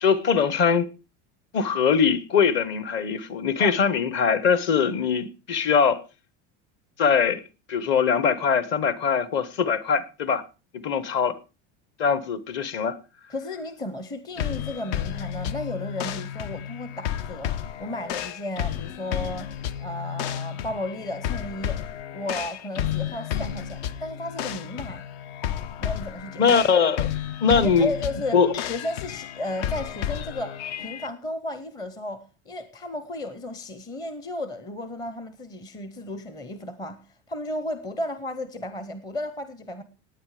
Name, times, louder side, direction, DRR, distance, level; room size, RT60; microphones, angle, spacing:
voice 1, 0.0-0.9 1.5-6.0 7.0-7.4 7.7-10.4 10.8-11.4 12.0-13.0 26.4-27.1 27.4-27.9 28.3-28.5, left 6 dB, 35° left, 1.0 m, -22 dB
voice 2, 13.3-21.8 22.1-25.0 25.8-26.6 27.6-28.4 28.7-37.0 37.3-39.8, left 1 dB, 10° left, 0.7 m, -34 dB
sound 1, 14.4-31.1, left 10 dB, 65° left, 1.0 m, -32 dB
17.0 x 9.3 x 4.9 m
cardioid pair, 175°, 34 cm